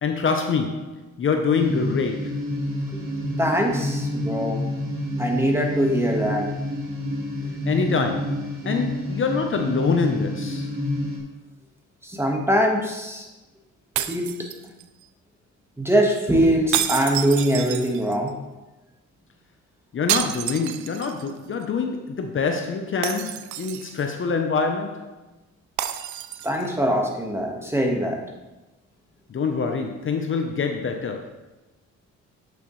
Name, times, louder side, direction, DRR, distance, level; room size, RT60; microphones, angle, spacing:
voice 1, 0.0-2.4 7.7-10.8 19.9-25.2 29.3-31.3, left 5 dB, 40° left, 4 dB, 0.7 m, -25 dB
sound 1, 1.5-11.2, left 1 dB, 45° right, 2.6 m, -28 dB
voice 2, 3.4-4.6 5.2-6.5 12.0-13.3 14.0-14.3 15.8-18.4 26.4-28.2, equal, 10° right, 1 dB, 1.4 m, -22 dB
sound 2, 14.0-15.0 16.7-18.3 20.1-21.3 21.6-21.7 23.0-24.1 25.8-26.7, right 11 dB, 70° right, 0.5 m, -29 dB
8.2 x 6.7 x 3.1 m, 1.1 s
cardioid pair, 90°, 30 cm